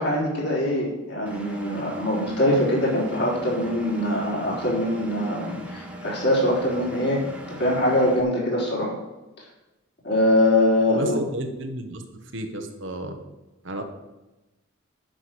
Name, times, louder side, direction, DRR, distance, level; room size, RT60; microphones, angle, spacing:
voice 1, 0.0-7.2 7.6-8.9 10.0-11.2, left 1 dB, 50° left, -4 dB, 4.3 m, -23 dB
Engine, 1.3-8.2, right 1 dB, 5° right, 1.2 m, -40 dB
voice 2, 10.9-12.0 12.3-13.2 13.6-13.8, right 1 dB, 60° right, 5 dB, 1.3 m, -32 dB
9.1 x 6.4 x 8.0 m, 1.0 s
head